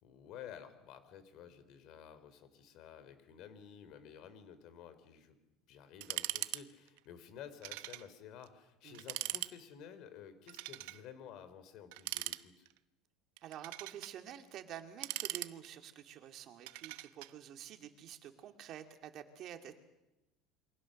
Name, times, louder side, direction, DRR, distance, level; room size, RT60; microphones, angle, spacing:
voice 1, 0.0-5.4 5.7-12.7, left 8 dB, 50° left, 12 dB, 3.4 m, -52 dB
sound 1, 6.0-6.6 6.9-7.0 7.6-8.1 8.4-8.5 8.9-9.5 10.5-11.0 11.9-12.8 13.4-14.1 14.8-15.9 16.7-17.3, right 20 dB, 75° right, 0.9 m, -40 dB
voice 2, 13.4-19.7, right 10 dB, 40° right, 6 dB, 2.5 m, -49 dB
28.0 x 23.5 x 6.6 m, 0.96 s
cardioid pair, 150°, 0 cm